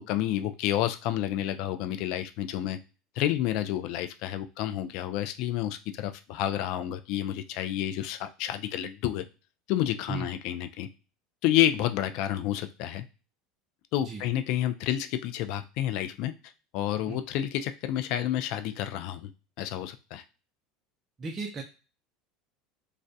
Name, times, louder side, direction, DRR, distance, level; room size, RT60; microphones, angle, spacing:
voice 1, 0.0-2.8 3.2-9.3 9.7-10.9 11.4-13.0 13.9-16.3 16.7-19.3 19.6-20.2, left 12 dB, 65° left, 9 dB, 0.3 m, -29 dB
voice 2, 21.2-21.6, right 4 dB, 25° right, 1 dB, 0.4 m, -35 dB
2.3 x 2.0 x 2.6 m, 0.33 s
supercardioid pair, 120°, 0 cm